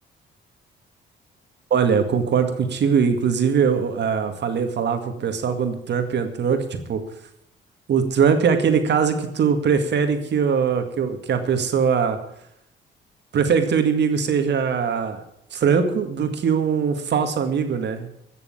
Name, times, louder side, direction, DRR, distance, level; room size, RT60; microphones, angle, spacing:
voice 1, 1.7-7.0 7.9-12.2 13.3-15.2 15.5-18.1, right 6 dB, 60° right, 7 dB, 2.0 m, -21 dB
15.0 x 6.9 x 8.6 m, 0.78 s
cardioid pair, 90°, 20 cm